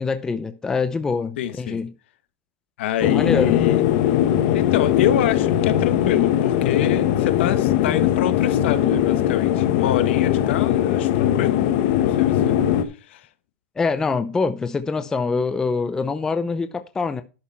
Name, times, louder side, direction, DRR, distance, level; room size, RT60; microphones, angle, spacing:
voice 1, 0.0-1.9 3.0-3.6 13.8-17.2, left 4 dB, 10° left, 0.5 m, -24 dB
voice 2, 1.4-1.8 2.8-3.8 4.5-11.6 12.0-12.5 13.1-13.3, left 11 dB, 60° left, 1.5 m, -26 dB
sound 1, 3.0-12.8, left 11 dB, 45° left, 1.2 m, -20 dB
11.5 x 6.7 x 4.4 m
supercardioid pair, 165°, 7 cm